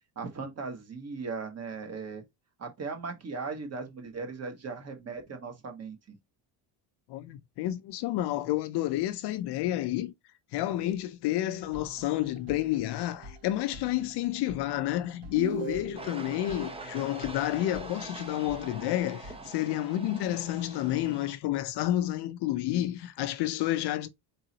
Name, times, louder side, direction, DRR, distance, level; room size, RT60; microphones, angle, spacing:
voice 1, 0.1-2.2 2.6-6.2, right 4 dB, 30° right, 1.4 m, -38 dB
voice 2, 7.1-10.1 10.5-24.1, left 14 dB, 55° left, 0.6 m, -30 dB
sound 1, 11.2-19.5, equal, 75° right, 2.6 m, -50 dB
sound 2, 15.4-16.4, right 3 dB, 55° right, 1.2 m, -36 dB
sound 3, 15.9-21.3, right 2 dB, 10° right, 0.8 m, -44 dB
4.2 x 3.8 x 2.8 m
cardioid pair, 150°, 49 cm